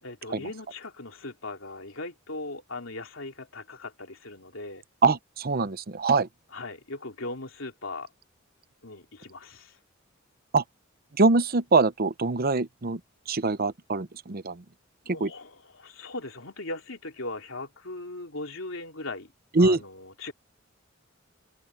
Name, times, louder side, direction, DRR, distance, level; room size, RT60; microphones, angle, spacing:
voice 1, 0.0-4.8 6.5-8.1 8.8-9.8 15.0-19.3 19.6-20.3, left 2 dB, 80° left, 3.2 m, -39 dB
voice 2, 5.0-6.3 10.5-10.6 11.1-13.0 13.3-14.6 15.1-15.3 19.5-19.8, right 3 dB, 50° right, 0.8 m, -23 dB
open air
head